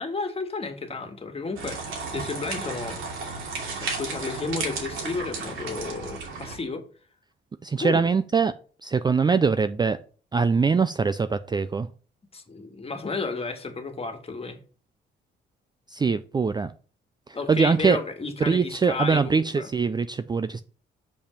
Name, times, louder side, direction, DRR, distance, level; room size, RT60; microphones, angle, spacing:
voice 1, 0.0-3.0 3.8-6.8 7.8-8.0 12.3-14.6 17.3-19.7, left 3 dB, 30° left, 1.7 m, -32 dB
sound 1, 1.5-6.6, right 4 dB, 85° right, 2.7 m, -33 dB
voice 2, 7.6-8.5 8.8-10.0 10.3-11.9 15.9-16.7 17.5-18.0 18.4-20.6, right 5 dB, 20° right, 0.4 m, -22 dB
6.9 x 5.3 x 5.2 m
cardioid pair, 90°, 20 cm